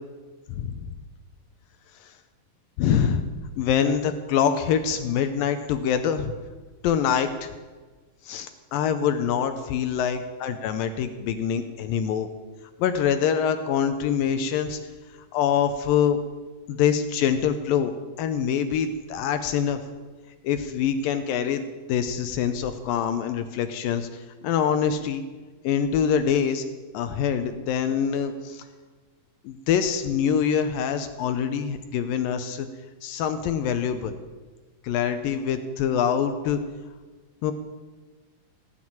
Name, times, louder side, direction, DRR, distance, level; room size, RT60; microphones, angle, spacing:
voice 1, 0.5-0.9 2.0-2.1 2.8-3.2 3.6-6.3 6.8-7.5 8.2-12.3 12.8-14.8 15.3-16.2 16.7-17.9 18.2-19.8 20.4-25.2 25.6-26.6 26.9-28.7 29.4-32.7 33.0-34.1 34.8-36.6 37.4-37.5, left 8 dB, 80° left, 9 dB, 2.3 m, -25 dB
18.0 x 6.3 x 8.7 m, 1.3 s
omnidirectional pair, 4.3 m